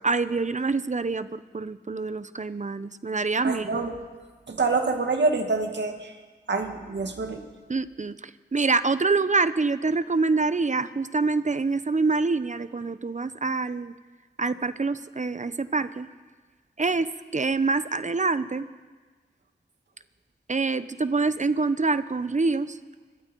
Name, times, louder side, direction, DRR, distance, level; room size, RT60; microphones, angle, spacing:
voice 1, 0.0-3.8 7.7-13.9 14.4-16.1 16.8-18.7 20.5-22.8, right 3 dB, 40° right, 13 dB, 0.8 m, -26 dB
voice 2, 3.4-4.0 4.5-6.1 6.5-7.4, right 3 dB, 75° right, 4 dB, 2.3 m, -26 dB
26.5 x 21.5 x 4.6 m, 1.4 s
wide cardioid pair, 75°, 18 cm